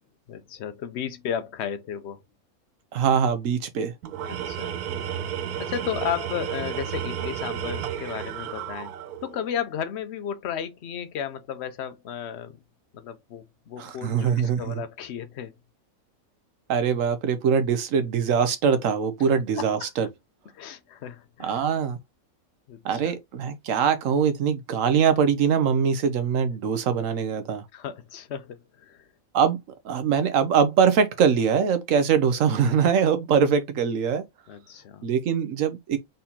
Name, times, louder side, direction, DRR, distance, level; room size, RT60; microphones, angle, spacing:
voice 1, 0.3-2.2 4.2-4.7 5.6-8.9 9.2-12.6 12.9-15.5 19.6-19.9 20.5-21.6 22.7-23.1 27.7-29.0 34.5-35.1, left 8 dB, 60° left, 0.8 m, -34 dB
voice 2, 2.9-3.9 13.8-14.7 16.7-20.1 21.4-22.0 22.8-27.6 29.3-29.6 29.8-34.2 35.0-36.0, right 7 dB, 65° right, 1.1 m, -22 dB
Tools, 4.0-9.4, right 9 dB, 85° right, 1.2 m, -32 dB
4.2 x 3.9 x 2.8 m
omnidirectional pair, 1.6 m